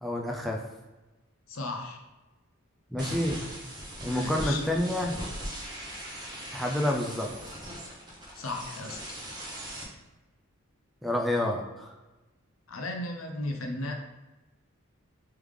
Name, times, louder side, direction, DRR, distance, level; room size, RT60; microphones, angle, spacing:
voice 1, 0.0-0.6 2.9-3.4 4.0-5.1 6.5-7.6 11.0-11.9, left 1 dB, ahead, -1 dB, 0.3 m, -29 dB
voice 2, 1.5-2.0 4.0-4.6 8.3-9.0 12.7-14.0, left 2 dB, 70° left, 3 dB, 0.6 m, -35 dB
sound 1, 3.0-9.8, right 1 dB, 20° right, 0.7 m, -39 dB
3.6 x 3.3 x 3.2 m, 1.1 s
head